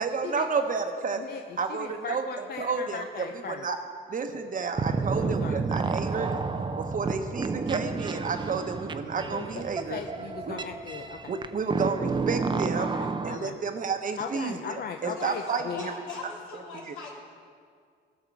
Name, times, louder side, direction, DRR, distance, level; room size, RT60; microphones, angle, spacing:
voice 1, 0.0-1.2 1.6-2.3 2.6-3.8 4.1-6.3 6.8-10.0 10.5-10.6 11.3-12.9 13.2-16.0 16.9-17.0, right 5 dB, 40° right, 6 dB, 1.0 m, -31 dB
voice 2, 1.7-3.7 5.2-5.7 9.3-9.6 9.9-11.3 12.8-13.6 14.2-15.9, left 6 dB, 50° left, 5 dB, 0.6 m, -38 dB
sound 1, 4.8-13.4, right 4 dB, 25° right, 0.5 m, -31 dB
voice 3, 15.0-17.2, left 3 dB, 85° left, -3 dB, 2.9 m, -41 dB
17.0 x 6.5 x 4.7 m, 2.1 s
cardioid pair, 90°, 20 cm